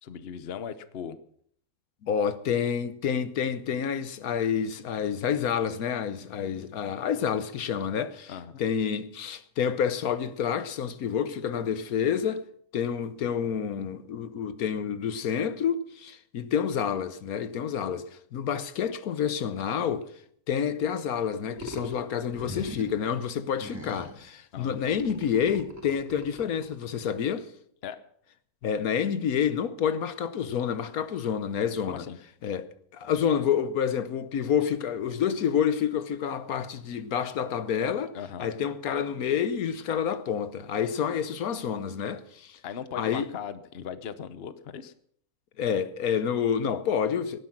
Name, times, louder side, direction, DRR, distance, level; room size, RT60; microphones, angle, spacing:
voice 1, 0.0-1.2 8.3-8.6 24.5-24.9 27.8-28.0 31.9-32.2 38.1-38.5 42.6-44.9, left 8 dB, 45° left, 1.0 m, -38 dB
voice 2, 2.0-12.5 12.7-20.1 20.5-27.5 28.6-32.1 32.4-42.6 43.0-43.3 45.6-47.4, left 8 dB, 75° left, 1.3 m, -28 dB
sound 1, 21.6-21.9 22.3-23.0 23.6-24.2 24.8-26.9, equal, 10° right, 2.7 m, -40 dB
18.0 x 11.5 x 6.0 m
omnidirectional pair, 1.6 m